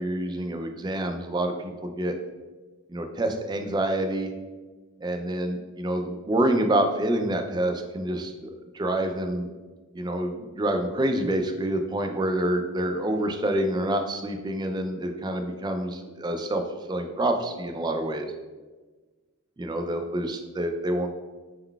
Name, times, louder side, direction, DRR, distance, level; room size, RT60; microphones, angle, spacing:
voice 1, 0.0-2.1 2.9-4.3 5.0-9.5 9.9-16.6 16.9-18.3 19.6-21.1, right 1 dB, 20° right, 5 dB, 0.3 m, -27 dB
5.4 x 3.8 x 2.3 m, 1.3 s
head